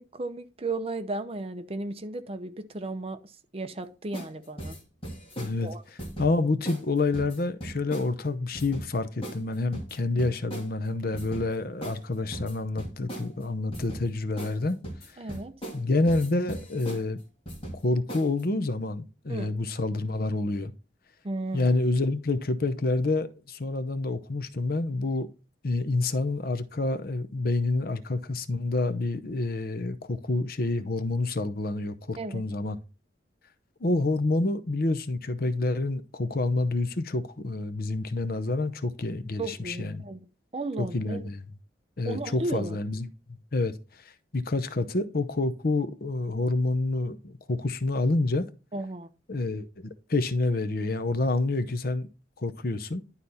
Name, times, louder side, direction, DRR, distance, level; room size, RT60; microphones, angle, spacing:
voice 1, 0.0-4.8 5.6-5.8 15.2-15.5 19.3-19.6 21.2-21.8 32.2-32.4 39.4-40.3 40.5-41.2 42.0-42.8 48.7-49.1, right 2 dB, 30° right, 0.7 m, -34 dB
sound 1, 4.1-4.3 4.6-5.6 6.0-6.3 6.7-6.8 7.1-8.1 8.6-8.9 9.2-9.4 9.7-10.7 11.1-11.5 11.8-12.0 12.3-13.3 13.7-14.1 14.4-14.6 14.8-15.8 16.1-17.0 17.5-17.8 18.1-18.4, right 1 dB, 30° left, 2.2 m, -38 dB
voice 2, 5.4-5.7 6.2-14.8 15.7-17.2 17.8-20.7 21.5-25.3 25.6-32.8 33.8-40.0 40.8-41.4 42.0-43.1 43.5-48.5 49.3-52.1 52.4-53.0, left 2 dB, 55° left, 0.8 m, -28 dB
11.0 x 4.1 x 4.2 m
head